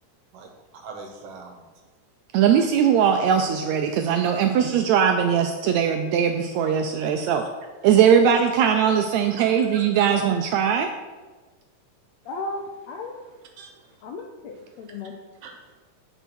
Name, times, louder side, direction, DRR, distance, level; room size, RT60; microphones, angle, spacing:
voice 1, 0.3-1.6 9.3-9.9 13.6-13.7 15.4-15.5, right 4 dB, 60° right, 2 dB, 1.8 m, -42 dB
voice 2, 2.3-7.4 7.8-10.9, right 8 dB, 85° right, 5 dB, 1.6 m, -20 dB
voice 3, 12.3-12.6 12.9-13.4 14.0-15.1, left 3 dB, 80° left, 3 dB, 1.6 m, -35 dB
9.6 x 4.5 x 6.0 m, 1.3 s
omnidirectional pair, 3.8 m